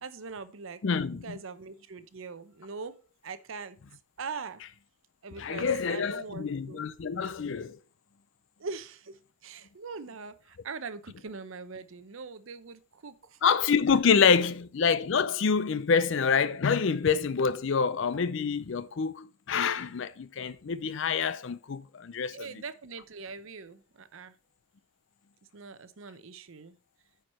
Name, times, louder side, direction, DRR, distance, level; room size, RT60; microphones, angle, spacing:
voice 1, 0.0-0.8 1.1-3.0 3.2-3.8 4.2-4.6 5.2-6.8 8.6-13.4 13.9-14.5 22.3-24.3 25.5-26.8, right 4 dB, 65° right, 0.6 m, -42 dB
voice 2, 0.8-1.4 5.4-7.8 13.4-22.4, left 6 dB, 60° left, 0.4 m, -27 dB
9.2 x 4.7 x 4.2 m
head